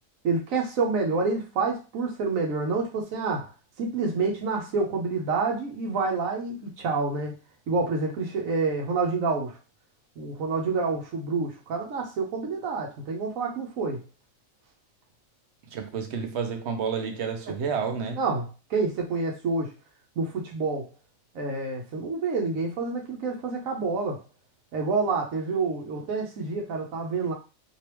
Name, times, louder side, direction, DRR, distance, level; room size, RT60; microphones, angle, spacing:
voice 1, 0.2-3.5 3.8-7.3 7.7-9.6 10.2-14.0 18.2-19.7 20.2-20.9 21.3-24.2 24.7-27.3, right 4 dB, 90° right, 1.2 m, -28 dB
voice 2, 15.7-18.2, right 6 dB, 60° right, 0.9 m, -30 dB
3.2 x 2.9 x 3.0 m
omnidirectional pair, 1.4 m